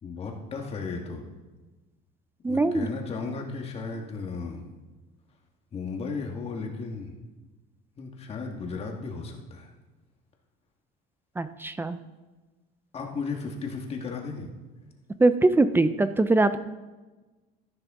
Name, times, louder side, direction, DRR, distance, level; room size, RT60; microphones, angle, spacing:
voice 1, 0.0-1.2 2.5-4.6 5.7-7.1 8.0-9.7 12.9-14.5, left 4 dB, 30° left, 1 dB, 1.7 m, -35 dB
voice 2, 2.4-2.9 11.4-12.0 15.2-16.6, right 2 dB, 10° right, 12 dB, 0.4 m, -22 dB
13.5 x 11.0 x 3.7 m, 1.2 s
cardioid pair, 140°, 20 cm